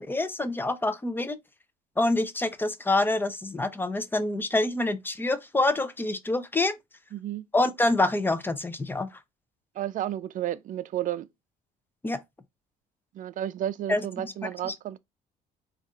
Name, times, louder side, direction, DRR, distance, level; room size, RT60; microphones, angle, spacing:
voice 1, 0.0-1.4 2.0-6.8 7.5-9.2 12.0-12.2 13.9-14.7, left 2 dB, 10° left, 0.5 m, -27 dB
voice 2, 7.1-7.5 9.8-11.3 13.1-15.0, right 12 dB, 50° right, 0.4 m, -32 dB
4.1 x 2.4 x 3.7 m
cardioid pair, 110°, 17 cm